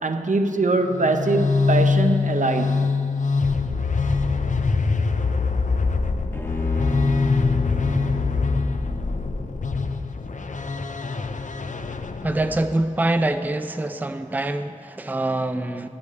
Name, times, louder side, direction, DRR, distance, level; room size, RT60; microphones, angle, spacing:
voice 1, 0.0-2.9, right 2 dB, 65° right, 0.6 m, -22 dB
sound 1, 0.9-12.7, left 4 dB, 65° left, 0.5 m, -23 dB
Bowed string instrument, 6.3-9.6, equal, 15° left, 0.7 m, -33 dB
voice 2, 12.2-15.9, right 2 dB, 15° right, 0.4 m, -25 dB
10.5 x 5.2 x 8.1 m
wide cardioid pair, 50°, 14 cm